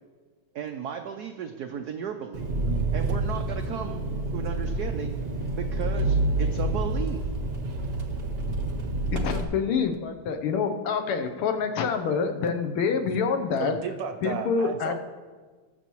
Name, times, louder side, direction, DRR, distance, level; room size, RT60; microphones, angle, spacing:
voice 1, 0.5-2.5 2.9-4.0 4.3-5.2 5.5-7.3, right 8 dB, 85° right, 5 dB, 0.8 m, -35 dB
Engine, 2.3-9.4, right 2 dB, 45° right, 0.7 m, -28 dB
voice 2, 9.1-13.7 14.2-14.9, left 5 dB, 85° left, 5 dB, 1.7 m, -26 dB
voice 3, 13.6-14.9, right 6 dB, 65° right, 6 dB, 1.3 m, -33 dB
19.0 x 7.1 x 3.0 m, 1.4 s
omnidirectional pair, 2.4 m